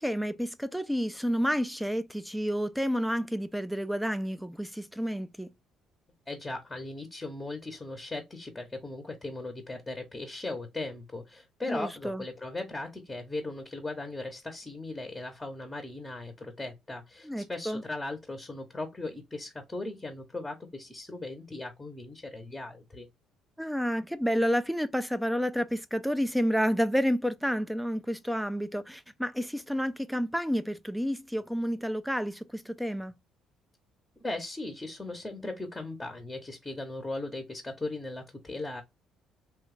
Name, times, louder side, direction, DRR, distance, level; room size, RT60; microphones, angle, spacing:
voice 1, 0.0-5.5 11.7-12.2 17.2-17.8 23.6-33.1, equal, ahead, 0.4 m, -30 dB
voice 2, 6.3-23.1 34.2-38.8, left 2 dB, 15° left, 0.8 m, -38 dB
3.1 x 2.3 x 3.3 m
cardioid pair, 90°, 0 cm